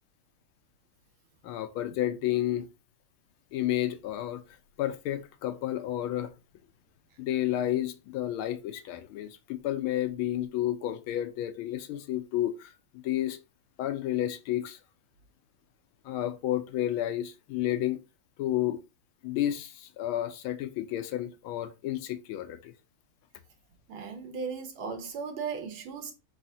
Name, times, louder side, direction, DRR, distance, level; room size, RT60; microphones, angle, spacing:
voice 1, 1.4-2.7 3.5-6.3 7.2-12.7 13.0-13.4 13.8-14.8 16.0-18.0 18.4-18.8 19.2-22.7, left 13 dB, 80° left, 1.4 m, -31 dB
voice 2, 23.9-26.1, right 5 dB, 70° right, 1.7 m, -36 dB
4.8 x 4.1 x 2.7 m
omnidirectional pair, 2.4 m